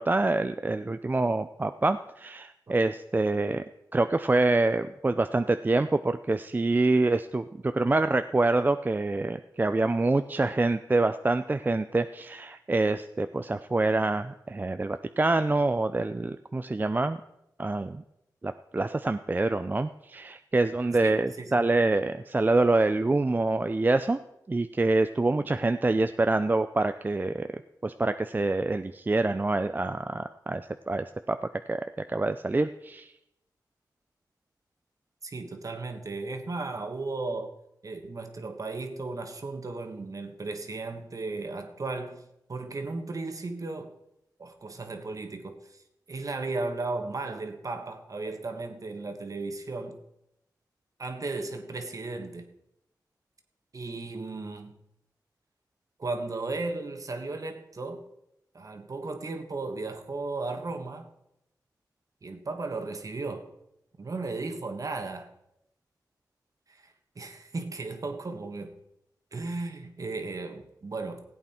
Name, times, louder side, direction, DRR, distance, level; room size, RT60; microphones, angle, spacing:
voice 1, 0.0-3.6 3.9-17.2 17.6-18.0 18.4-24.2 24.5-31.4 31.7-33.1, right 2 dB, 25° right, 10 dB, 0.4 m, -26 dB
voice 2, 21.0-21.5 35.2-37.5 37.8-43.9 44.4-45.8 46.1-50.0 51.0-52.5 53.7-54.8 56.0-58.0 58.5-61.1 62.2-63.5 64.0-65.3 66.7-68.7 69.3-71.2, right 3 dB, 50° right, 6 dB, 1.5 m, -35 dB
16.0 x 8.6 x 4.4 m, 0.83 s
cardioid pair, 75°, 7 cm